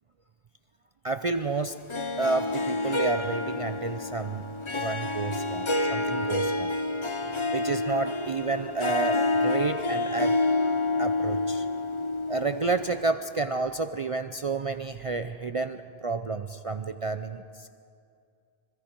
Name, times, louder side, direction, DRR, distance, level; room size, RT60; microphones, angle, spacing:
voice 1, 1.0-1.8 2.2-4.4 4.7-6.7 7.5-10.4 11.0-11.7 12.3-17.7, right 4 dB, 40° right, 9 dB, 0.5 m, -30 dB
Harp, 1.9-13.0, left 2 dB, 30° left, 0.8 m, -28 dB
26.5 x 25.0 x 4.5 m, 2.4 s
omnidirectional pair, 1.1 m